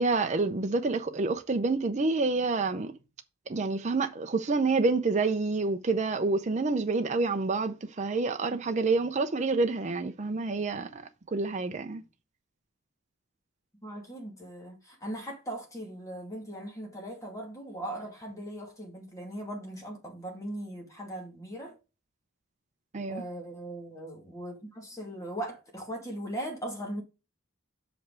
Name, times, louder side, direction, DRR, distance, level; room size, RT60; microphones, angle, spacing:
voice 1, 0.0-3.0 3.5-12.0 22.9-23.2, right 3 dB, 35° right, 0.5 m, -28 dB
voice 2, 13.8-21.8 23.1-27.0, right 1 dB, 15° left, 2.3 m, -39 dB
6.1 x 5.2 x 4.7 m
head